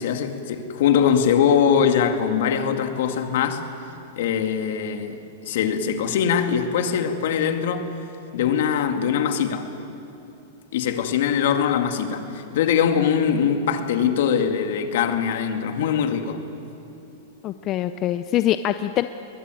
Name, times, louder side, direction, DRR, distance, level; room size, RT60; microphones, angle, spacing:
voice 1, 0.0-3.7 4.2-7.9 8.3-9.7 10.7-16.4, left 7 dB, 65° left, 2.2 m, -22 dB
voice 2, 17.4-19.1, left 12 dB, 30° left, 0.6 m, -23 dB
22.0 x 21.5 x 9.1 m
supercardioid pair, 145°, 0 cm